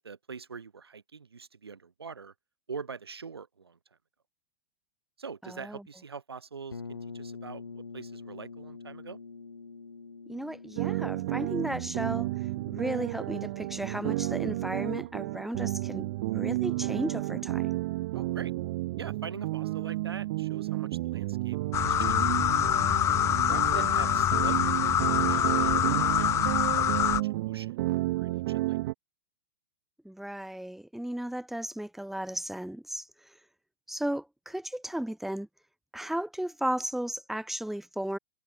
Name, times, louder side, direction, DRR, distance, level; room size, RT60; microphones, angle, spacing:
voice 1, 0.0-2.3 2.7-3.8 5.2-9.2 18.1-18.5 19.0-22.7 23.5-27.9 28.1-28.8, right 5 dB, 80° right, 5.2 m, -44 dB
voice 2, 5.4-5.8 10.3-17.7 30.0-33.3 33.9-35.5 35.9-38.2, right 1 dB, ahead, 3.1 m, -35 dB
sound 1, 6.7-16.4, left 4 dB, 85° left, 4.8 m, -47 dB
sound 2, 10.8-28.9, right 18 dB, 50° right, 0.6 m, -31 dB
sound 3, 21.7-27.2, left 11 dB, 20° left, 0.4 m, -25 dB
figure-of-eight pair, 100°, 13 cm